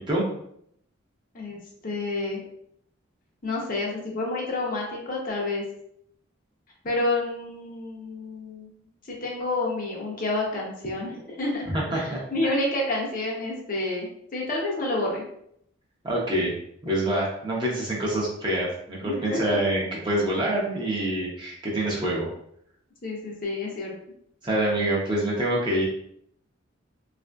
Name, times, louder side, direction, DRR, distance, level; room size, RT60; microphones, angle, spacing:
voice 1, 1.3-2.4 3.4-5.6 6.8-8.7 9.1-11.7 11.9-15.2 19.0-19.6 23.0-23.9, left 2 dB, 40° left, -2 dB, 0.7 m, -29 dB
voice 2, 11.7-12.5 16.0-16.5 16.8-22.3 24.4-25.9, right 1 dB, 20° right, -4 dB, 0.6 m, -26 dB
3.5 x 2.5 x 2.2 m, 0.71 s
head